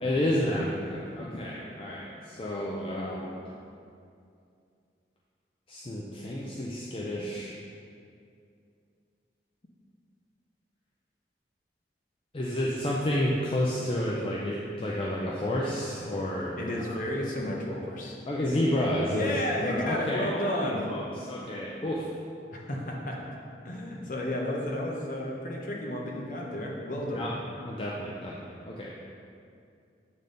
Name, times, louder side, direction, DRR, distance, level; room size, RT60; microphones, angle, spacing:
voice 1, 0.0-3.4 5.7-7.6 12.3-17.0 18.3-22.1 27.1-27.3 27.6-28.9, left 1 dB, 30° left, -5 dB, 0.5 m, -30 dB
voice 2, 16.6-18.2 19.1-20.9 22.5-23.4 23.6-27.3, left 1 dB, 45° left, -1 dB, 0.9 m, -32 dB
8.3 x 3.5 x 3.9 m, 2.4 s
head